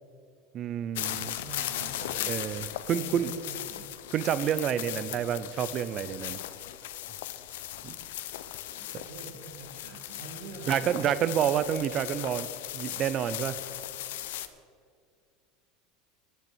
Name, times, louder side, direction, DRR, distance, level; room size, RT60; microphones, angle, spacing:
voice 1, 0.5-1.4 2.2-3.4 4.1-6.4 7.8-8.0 8.9-9.0 10.7-12.5 12.7-13.6, right 9 dB, 35° right, 15 dB, 0.5 m, -29 dB
sound 1, 0.9-14.5, left 13 dB, 90° left, 0.6 m, -37 dB
voice 2, 1.4-2.3 2.9-3.8 5.0-5.2 8.7-11.2, right 3 dB, 80° right, 0 dB, 2.5 m, -45 dB
10.5 x 7.5 x 7.9 m, 2.2 s
supercardioid pair, 155°, 0 cm